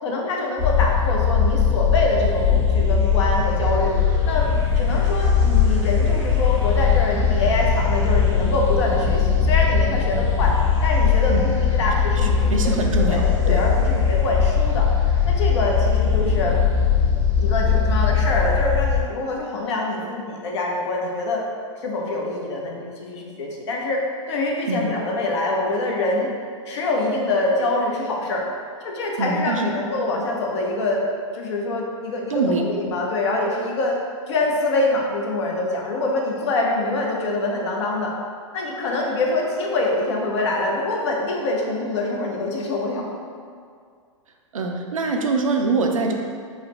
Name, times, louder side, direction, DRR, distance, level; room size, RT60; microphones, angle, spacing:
voice 1, 0.0-3.9 4.2-4.5 4.8-14.9 15.2-16.6 17.4-21.4 21.8-26.3 26.7-28.4 28.8-31.0 31.3-34.0 34.3-38.1 38.5-43.1, left 2 dB, 60° left, -1 dB, 0.6 m, -25 dB
sound 1, 0.6-19.0, left 6 dB, 35° left, 1.4 m, -20 dB
voice 2, 12.5-13.6 24.7-24.9 29.2-29.7 32.3-32.6 44.5-46.1, right 3 dB, 80° right, 2 dB, 0.4 m, -23 dB
3.9 x 2.0 x 3.1 m, 2.2 s
figure-of-eight pair, 105°, 17 cm